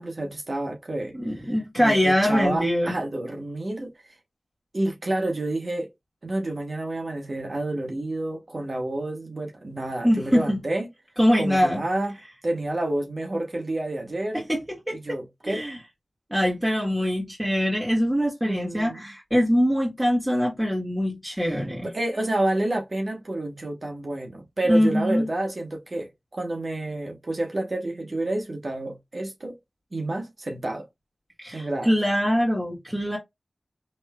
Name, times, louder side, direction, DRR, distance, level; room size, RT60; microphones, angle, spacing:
voice 1, 0.0-4.2 4.7-5.9 6.2-10.9 11.4-14.4 14.9-15.7 18.4-19.0 21.3-29.6 29.9-30.9 31.5-31.9, right 1 dB, 50° right, 1.0 m, -29 dB
voice 2, 1.1-2.9 10.0-10.6 11.2-11.8 14.3-14.6 14.9-15.0 15.4-15.8 16.3-21.9 24.7-25.3 31.4-33.2, equal, 10° right, 1.8 m, -23 dB
5.3 x 3.3 x 2.3 m
wide cardioid pair, 65°, 0 cm